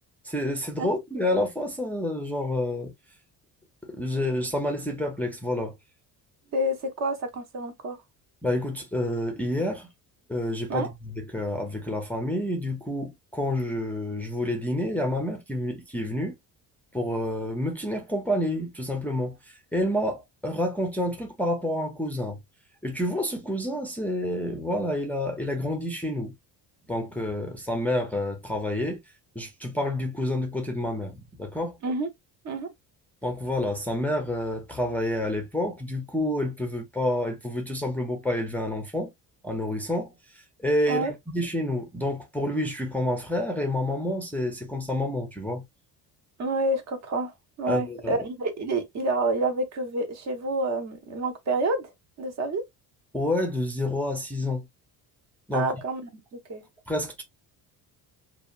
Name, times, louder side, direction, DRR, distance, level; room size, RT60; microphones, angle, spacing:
voice 1, 0.2-2.9 3.9-5.7 8.4-9.9 10.3-16.3 16.9-22.4 22.8-26.3 26.9-29.0 29.4-31.8 33.2-39.1 39.4-40.1 40.6-45.6 47.7-48.2 53.1-54.7 55.5-55.7 56.9-57.2, left 1 dB, 5° left, 0.5 m, -28 dB
voice 2, 6.5-8.0 10.7-10.9 31.8-32.1 32.4-32.7 40.9-41.1 46.4-51.9 52.2-52.6 55.5-56.1 56.5-56.6, right 2 dB, 45° right, 0.8 m, -28 dB
2.8 x 2.2 x 2.4 m
cardioid pair, 135°, 39 cm